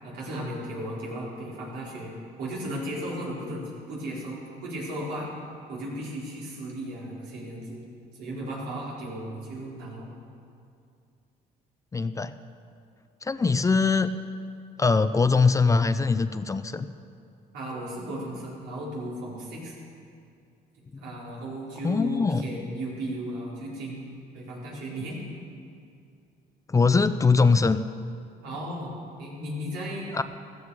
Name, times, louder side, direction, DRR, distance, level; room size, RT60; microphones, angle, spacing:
voice 1, 0.0-2.1 2.4-5.3 5.7-7.8 8.1-10.1 17.5-19.7 21.0-25.2 28.4-30.1, equal, 90° right, -5 dB, 4.3 m, -35 dB
voice 2, 11.9-12.3 13.2-14.1 14.8-16.9 21.8-22.4 26.7-27.8 30.1-30.2, left 4 dB, 20° left, 12 dB, 0.5 m, -22 dB
15.0 x 14.5 x 4.9 m, 2.4 s
cardioid pair, 110°, 17 cm